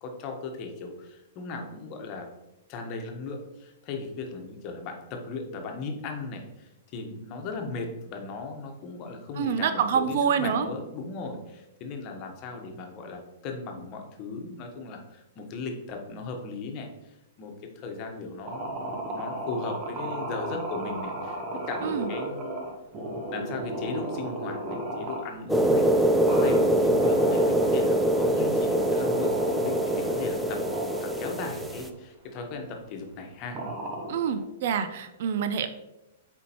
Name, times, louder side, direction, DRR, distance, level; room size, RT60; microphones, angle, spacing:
voice 1, 0.0-2.3 2.7-22.7 23.3-30.6 31.0-33.6, left 3 dB, 40° left, 3 dB, 1.2 m, -37 dB
voice 2, 9.4-10.7 21.8-22.1 34.1-35.7, right 7 dB, 55° right, 10 dB, 0.5 m, -26 dB
sound 1, 18.5-25.4 26.2-31.9 32.4-32.7 33.5-34.4, right 1 dB, 30° right, 1.0 m, -35 dB
sound 2, 25.5-31.9, right 1 dB, 5° right, 0.5 m, -24 dB
8.1 x 4.4 x 3.0 m, 0.94 s
hypercardioid pair, 110°, 0 cm